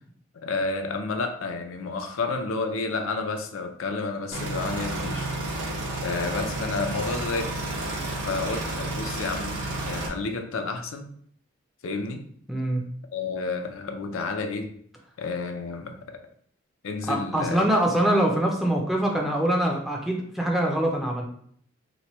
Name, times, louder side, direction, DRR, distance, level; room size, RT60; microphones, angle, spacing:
voice 1, 0.4-5.3 6.0-7.6 8.2-11.1 11.8-12.2 13.1-14.7 15.2-16.2 16.8-17.6, left 3 dB, 80° left, 4 dB, 0.5 m, -30 dB
sound 1, 4.3-10.1, right 2 dB, 65° right, 0.9 m, -31 dB
voice 2, 12.5-12.8 17.1-21.2, right 1 dB, ahead, -1 dB, 0.4 m, -24 dB
3.0 x 2.1 x 4.1 m, 0.62 s
head